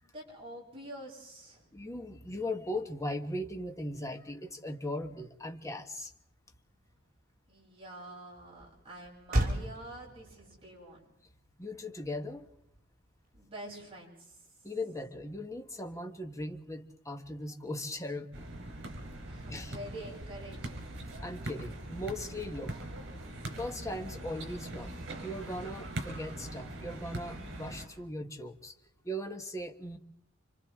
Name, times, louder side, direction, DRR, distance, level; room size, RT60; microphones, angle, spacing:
voice 1, 0.0-1.7 7.5-11.2 13.3-14.4 19.2-20.9 27.5-27.6, right 1 dB, 30° right, -3 dB, 7.6 m, -47 dB
voice 2, 1.7-6.1 11.6-12.5 14.6-18.5 19.5-19.7 21.2-22.7 23.6-24.9 25.2-28.7 29.0-30.0, left 1 dB, 15° left, 5 dB, 1.4 m, -38 dB
Motor vehicle (road), 5.4-13.9, right 1 dB, 45° right, 2.6 m, -39 dB
sound 1, 18.3-27.9, right 1 dB, 65° right, 4.0 m, -42 dB
29.5 x 25.0 x 3.7 m, 0.74 s
head